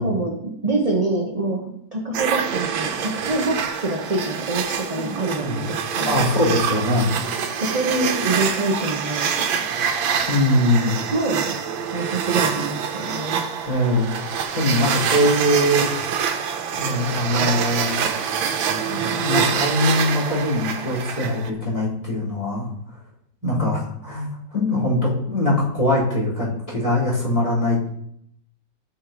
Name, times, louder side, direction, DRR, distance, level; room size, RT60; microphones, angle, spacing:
voice 1, 0.0-1.6 1.9-6.2 7.5-9.6 11.1-11.6 11.9-13.4 23.4-23.9, right 2 dB, 25° right, 0 dB, 0.9 m, -26 dB
sound 1, 2.1-21.5, right 7 dB, 85° right, 1.6 m, -25 dB
voice 2, 6.0-7.1 10.3-10.9 13.7-14.1 14.5-15.9 16.7-17.9 18.7-22.7 23.4-27.9, left 1 dB, 20° left, -9 dB, 4.5 m, -22 dB
13.0 x 6.5 x 3.1 m, 0.71 s
omnidirectional pair, 2.1 m